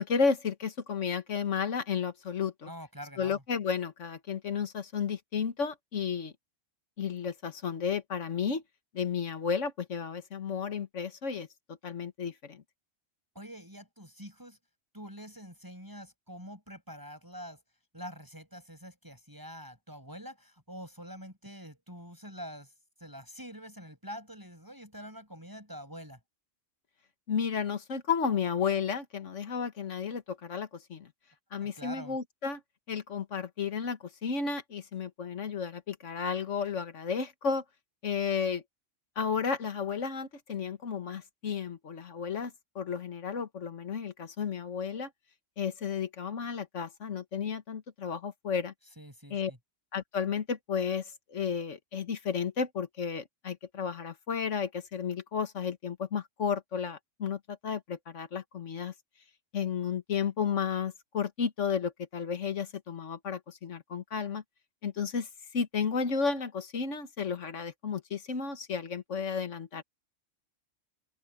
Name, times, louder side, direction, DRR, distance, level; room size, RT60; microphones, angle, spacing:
voice 1, 0.0-2.7 3.2-6.3 7.0-8.6 8.9-12.6 27.3-31.1 31.5-32.6 32.9-37.6 38.0-38.6 39.1-45.1 45.6-48.7 49.3-49.5 49.9-58.9 59.5-64.4 64.8-69.8, left 6 dB, 75° left, 1.8 m, -33 dB
voice 2, 2.7-3.4 13.3-14.6 14.9-17.6 17.9-22.7 23.0-26.2 31.6-32.2 49.0-49.6, equal, 15° right, 7.5 m, -45 dB
omnidirectional pair, 1.3 m